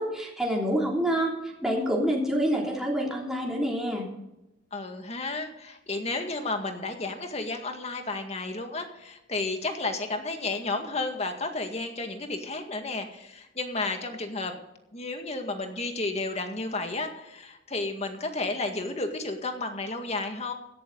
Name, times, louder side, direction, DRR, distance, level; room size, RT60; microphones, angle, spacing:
voice 1, 0.0-1.3 1.6-4.0, equal, 5° right, -3 dB, 3.2 m, -27 dB
voice 2, 4.7-14.6 14.9-20.5, left 3 dB, 35° left, 5 dB, 2.0 m, -32 dB
16.0 x 12.5 x 4.0 m, 0.92 s
head